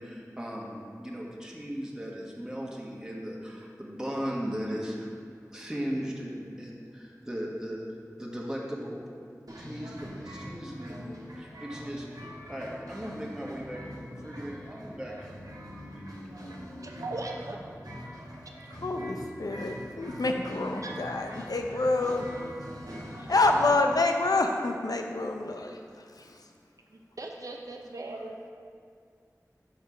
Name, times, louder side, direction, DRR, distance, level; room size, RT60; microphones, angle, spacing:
voice 1, 0.0-5.1 5.5-7.8 8.2-9.1 9.6-12.1 12.5-15.3, equal, 10° right, -3 dB, 1.2 m, -37 dB
sound 1, 9.5-23.7, equal, 75° right, 1.3 m, -43 dB
voice 2, 16.8-17.7 18.4-18.5 20.8-20.9 21.3-21.5 26.9-28.5, right 2 dB, 60° right, 1 dB, 0.5 m, -39 dB
voice 3, 18.7-22.9 23.2-26.5, left 2 dB, 80° left, 4 dB, 0.6 m, -28 dB
6.3 x 4.4 x 5.5 m, 2.2 s
wide cardioid pair, 45°, 6 cm